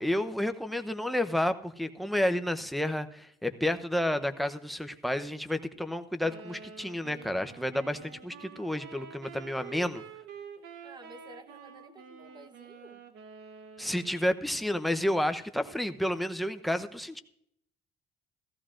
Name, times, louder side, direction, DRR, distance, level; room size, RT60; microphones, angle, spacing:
voice 1, 0.0-10.0 13.8-17.2, left 1 dB, ahead, 7 dB, 0.7 m, -30 dB
sound 1, 6.2-14.2, right 6 dB, 80° right, 1.2 m, -48 dB
voice 2, 10.8-13.0, right 2 dB, 25° right, 9 dB, 1.1 m, -52 dB
16.0 x 14.0 x 2.5 m, 0.70 s
cardioid pair, 110°, 17 cm